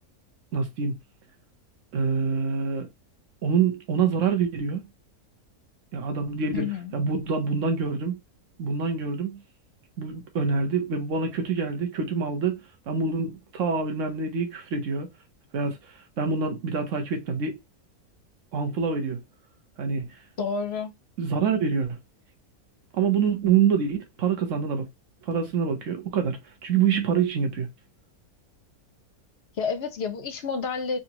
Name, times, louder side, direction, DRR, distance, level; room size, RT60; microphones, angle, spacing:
voice 1, 0.5-1.0 1.9-2.9 3.4-4.9 5.9-6.7 6.9-8.1 8.6-9.4 10.0-12.6 12.9-15.1 15.5-15.8 16.2-17.6 18.5-19.2 19.8-20.1 21.2-22.0 22.9-24.9 25.3-27.7, right 6 dB, 55° right, 1.3 m, -26 dB
voice 2, 6.5-6.9 20.4-20.9 29.6-31.0, left 5 dB, 55° left, 0.8 m, -29 dB
4.0 x 2.8 x 2.9 m
omnidirectional pair, 1.6 m